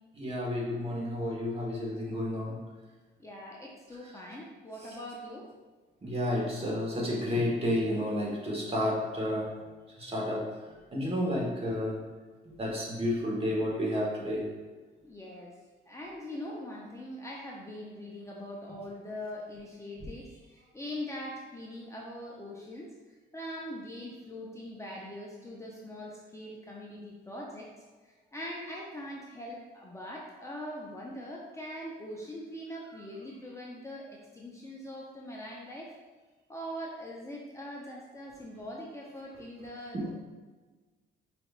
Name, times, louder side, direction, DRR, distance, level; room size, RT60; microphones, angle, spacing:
voice 1, 0.1-2.6 6.0-9.5 10.0-10.5 10.9-12.0 12.6-14.4 39.9-40.1, left 1 dB, 30° right, -3 dB, 1.3 m, -31 dB
voice 2, 3.2-5.5 15.0-15.5 15.9-22.9 23.3-27.7 28.3-35.9 36.5-40.1, left 1 dB, 15° left, -3 dB, 0.6 m, -42 dB
5.0 x 3.4 x 2.4 m, 1.3 s
cardioid pair, 90°, 20 cm